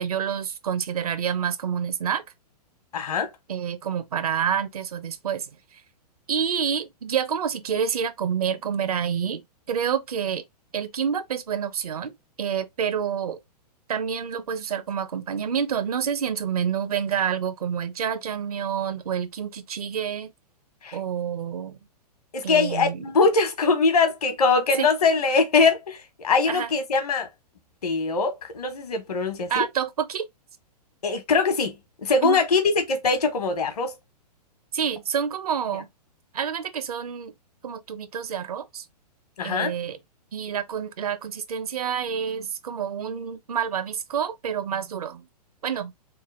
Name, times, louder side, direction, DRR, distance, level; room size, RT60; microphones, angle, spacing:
voice 1, 0.0-2.2 3.5-5.8 6.3-9.4 9.7-10.4 10.7-12.1 12.4-13.4 13.9-20.3 20.9-21.8 22.4-23.1 24.8-24.9 26.5-26.7 29.5-30.3 32.2-32.4 34.7-35.9 36.3-37.3 37.6-38.8 39.4-40.0 40.3-45.3 45.6-45.9, right 8 dB, 65° right, 0.7 m, -28 dB
voice 2, 2.9-3.3 20.8-21.0 22.3-27.3 27.8-29.6 31.0-33.9 39.4-39.7, left 4 dB, 65° left, 1.1 m, -22 dB
3.3 x 2.2 x 3.2 m
figure-of-eight pair, 115°, 21 cm